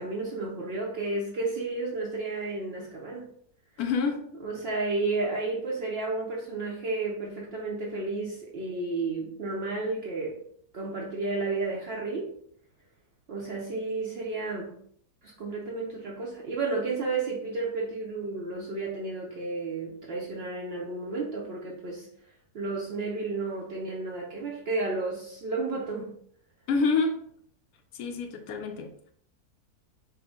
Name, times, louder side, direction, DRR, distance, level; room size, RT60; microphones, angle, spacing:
voice 1, 0.0-3.3 4.4-10.4 10.7-12.3 13.3-14.7 15.2-22.1 22.5-26.1, right 3 dB, 65° right, -2 dB, 0.6 m, -32 dB
voice 2, 3.8-4.2 26.7-27.2 27.9-28.9, left 4 dB, 75° left, 5 dB, 1.1 m, -27 dB
4.5 x 2.0 x 3.5 m, 0.64 s
omnidirectional pair, 1.6 m